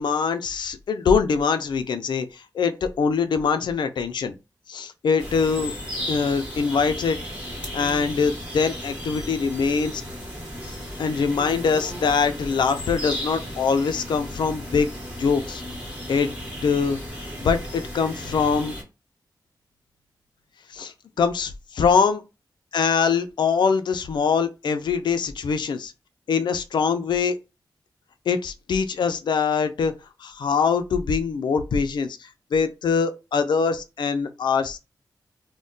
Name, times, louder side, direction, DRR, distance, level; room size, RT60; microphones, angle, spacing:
voice 1, 0.0-4.3 4.7-5.7 6.1-7.2 7.7-10.0 10.6-14.9 15.2-15.6 16.1-16.3 16.6-17.0 17.4-18.7 20.7-22.2 22.7-25.9 26.3-27.4 28.3-29.9 30.2-34.8, left 5 dB, 75° left, 0.4 m, -23 dB
sound 1, 5.2-18.8, equal, 15° right, 0.9 m, -35 dB
2.2 x 2.1 x 3.7 m
wide cardioid pair, 175°, 8 cm